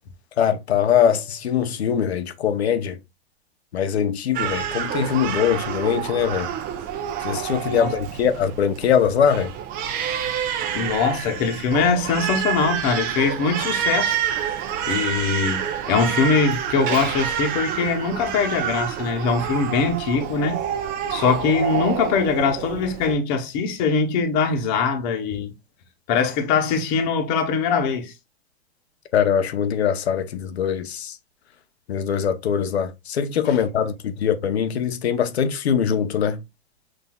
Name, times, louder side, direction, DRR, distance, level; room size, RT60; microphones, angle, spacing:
voice 1, 0.4-3.0 3.7-6.5 7.2-9.5 29.1-31.2 31.9-36.4, left 8 dB, 90° left, 0.8 m, -22 dB
Crying sobbing, 4.3-23.1, right 9 dB, 30° right, 0.7 m, -28 dB
voice 2, 10.7-14.2 14.9-20.6 21.1-25.5 26.1-28.1, left 5 dB, 40° left, 1.0 m, -22 dB
5.9 x 2.7 x 2.3 m
hypercardioid pair, 135°, 31 cm